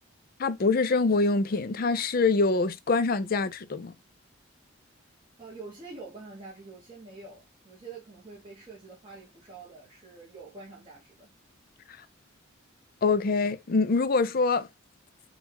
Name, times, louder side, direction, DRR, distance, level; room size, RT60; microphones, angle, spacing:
voice 1, 0.4-3.9 13.0-14.7, left 3 dB, 45° left, 0.4 m, -25 dB
voice 2, 5.4-11.3, right 3 dB, 25° right, 1.1 m, -46 dB
5.4 x 2.4 x 2.9 m
head